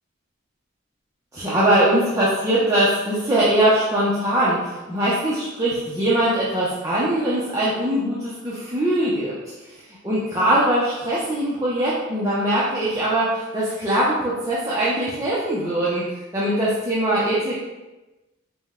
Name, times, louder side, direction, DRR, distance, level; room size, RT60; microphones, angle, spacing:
voice 1, 1.3-9.3 9.7-16.0 16.3-17.5, right 1 dB, 15° right, -9 dB, 0.6 m, -21 dB
5.1 x 2.2 x 3.5 m, 1.1 s
head